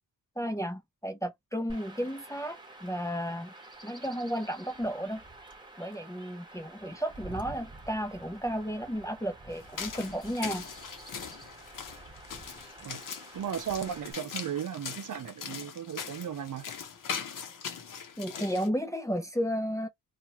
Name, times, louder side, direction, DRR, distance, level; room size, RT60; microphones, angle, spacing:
voice 1, 0.4-3.5 3.8-5.2 5.8-10.7 18.2-19.9, equal, 10° left, 0.5 m, -33 dB
Chirp tweet / Wind / Stream, 1.7-14.1, right 2 dB, 10° right, 1.0 m, -49 dB
sound 1, 9.5-18.7, left 7 dB, 60° left, 0.8 m, -41 dB
voice 2, 13.3-16.7, right 9 dB, 55° right, 0.6 m, -35 dB
2.8 x 2.3 x 2.9 m
wide cardioid pair, 105°, 36 cm